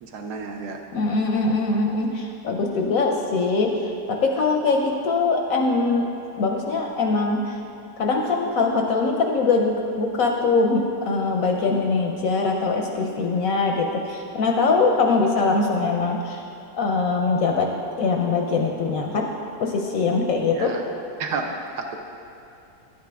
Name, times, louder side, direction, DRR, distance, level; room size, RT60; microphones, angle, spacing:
voice 1, 0.0-0.8 20.5-20.8 21.2-21.5 21.8-22.0, right 4 dB, 70° right, 3 dB, 1.2 m, -31 dB
voice 2, 0.9-6.1 6.4-7.6 8.0-16.4 16.8-17.7 18.0-19.2 19.6-20.7, left 3 dB, 65° left, 2 dB, 0.9 m, -22 dB
10.5 x 8.3 x 3.4 m, 2.7 s
omnidirectional pair, 1.9 m